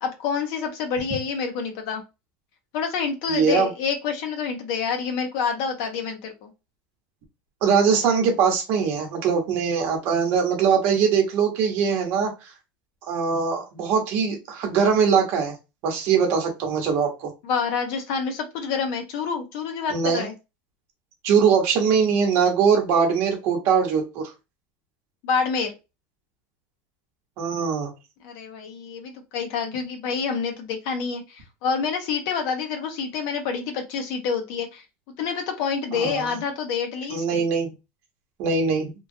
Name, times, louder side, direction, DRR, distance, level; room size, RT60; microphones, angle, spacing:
voice 1, 0.0-2.0 2.7-6.5 17.4-20.3 25.2-25.7 28.2-34.8 35.2-37.4, left 6 dB, 55° left, 4 dB, 0.8 m, -27 dB
voice 2, 3.3-3.7 7.6-12.5 13.1-15.5 15.8-17.3 19.9-20.3 21.2-24.3 27.4-27.9 35.9-36.4 37.1-37.7 38.4-38.9, right 6 dB, 50° right, 3 dB, 1.0 m, -22 dB
3.0 x 2.3 x 2.6 m, 0.26 s
supercardioid pair, 160°, 5 cm